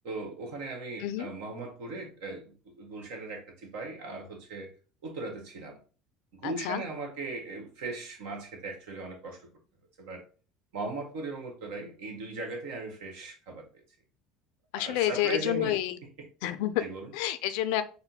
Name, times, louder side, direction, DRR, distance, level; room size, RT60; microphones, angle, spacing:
voice 1, 0.0-4.7 5.0-5.8 6.3-9.4 10.0-10.2 10.7-13.8 14.7-15.8 16.8-17.1, right 3 dB, 80° right, 1.4 m, -38 dB
voice 2, 6.4-6.8 14.7-16.0 16.4-16.7 17.1-17.8, left 13 dB, 75° left, 0.4 m, -29 dB
4.3 x 2.2 x 4.0 m
supercardioid pair, 90°, 0 cm